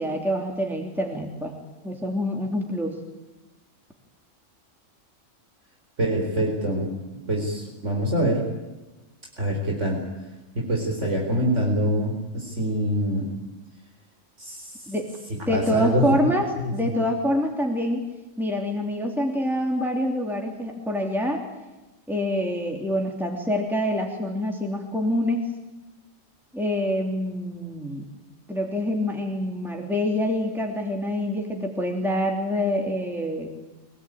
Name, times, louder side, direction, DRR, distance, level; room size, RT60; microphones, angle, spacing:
voice 1, 0.0-1.6 1.8-3.0 14.9-15.1 15.5-18.0 18.4-21.4 22.1-25.5 26.5-28.1 28.5-33.5, left 1 dB, ahead, 1 dB, 3.0 m, -26 dB
voice 2, 6.0-6.9 7.3-8.4 9.4-10.0 10.5-13.3 14.4-14.9 15.5-16.3 16.6-17.0, equal, 65° right, 0 dB, 4.5 m, -25 dB
24.5 x 19.0 x 9.3 m, 1.1 s
omnidirectional pair, 1.3 m